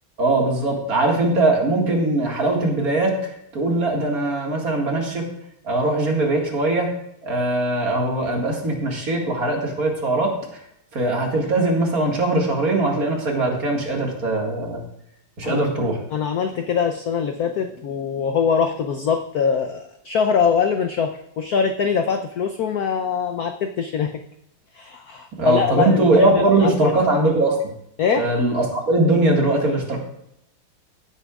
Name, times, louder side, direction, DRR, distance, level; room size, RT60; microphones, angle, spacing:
voice 1, 0.2-5.3 5.6-6.9 7.2-10.3 10.9-14.8 15.4-16.0 25.4-27.6 28.1-30.0, right 2 dB, 45° right, 0 dB, 2.2 m, -21 dB
voice 2, 16.1-24.1 24.7-26.9 28.0-28.3, left 6 dB, 80° left, 5 dB, 0.8 m, -23 dB
16.0 x 8.8 x 2.4 m, 0.79 s
omnidirectional pair, 2.4 m